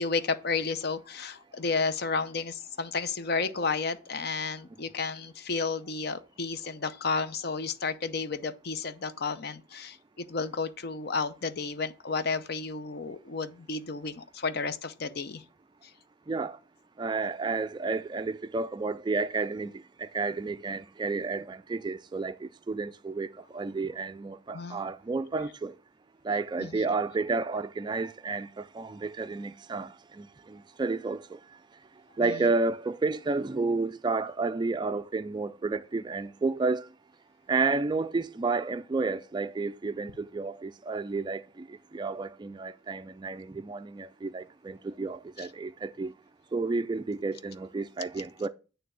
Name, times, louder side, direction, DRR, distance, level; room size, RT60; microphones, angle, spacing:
voice 1, 0.0-15.4 24.5-24.8 26.6-26.8 32.2-32.3 45.4-45.5, left 4 dB, 55° left, 0.6 m, -32 dB
voice 2, 17.0-19.7 20.0-23.3 23.5-25.7 26.2-29.9 30.2-31.2 32.2-36.9 37.5-41.4 41.9-46.1 46.5-48.5, right 3 dB, 25° right, 0.3 m, -31 dB
9.0 x 3.4 x 6.3 m
head